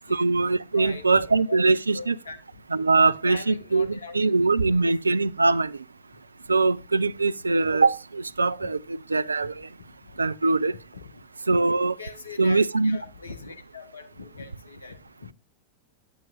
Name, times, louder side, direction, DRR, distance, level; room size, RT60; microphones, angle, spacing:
voice 1, 0.1-2.2 2.7-5.8 6.5-9.7 10.2-10.7 11.5-12.0 12.4-13.0, right 3 dB, 80° right, 0.3 m, -22 dB
voice 2, 0.7-1.6 1.9-2.4 3.0-4.8 7.6-7.7 8.6-8.7 9.4-9.5 10.1-10.2 10.9-11.6 12.0-15.3, left 4 dB, 75° left, 1.1 m, -41 dB
8.9 x 7.8 x 2.5 m
figure-of-eight pair, 90°, 0 cm